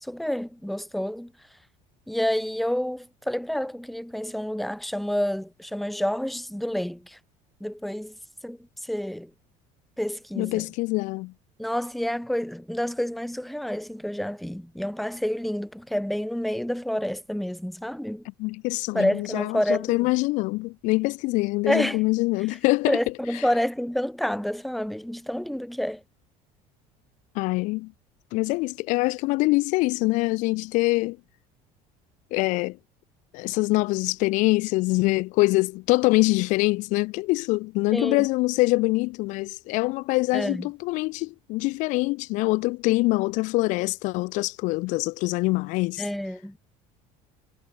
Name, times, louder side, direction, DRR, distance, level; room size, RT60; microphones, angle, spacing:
voice 1, 0.0-1.3 2.1-7.2 7.6-8.1 8.4-9.3 10.0-10.7 11.6-18.2 18.9-20.1 21.7-22.0 22.9-26.0 37.9-38.3 40.3-40.7 46.0-46.6, equal, ahead, 0.7 m, -28 dB
voice 2, 10.4-11.3 18.4-23.0 27.3-27.9 28.3-31.2 32.3-32.8 33.3-46.0, left 23 dB, 60° left, 0.7 m, -24 dB
cardioid pair, 180°, 15 cm